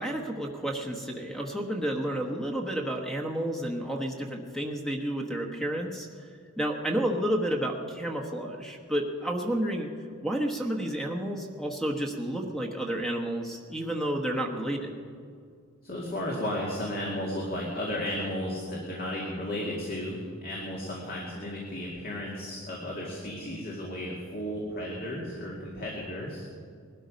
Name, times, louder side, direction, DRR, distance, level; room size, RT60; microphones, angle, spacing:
voice 1, 0.0-6.3 6.6-9.9 10.2-14.9, right 1 dB, ahead, 1 dB, 1.1 m, -31 dB
voice 2, 15.8-26.5, left 1 dB, 45° left, -3 dB, 2.2 m, -34 dB
19.5 x 12.5 x 5.2 m, 2.1 s
head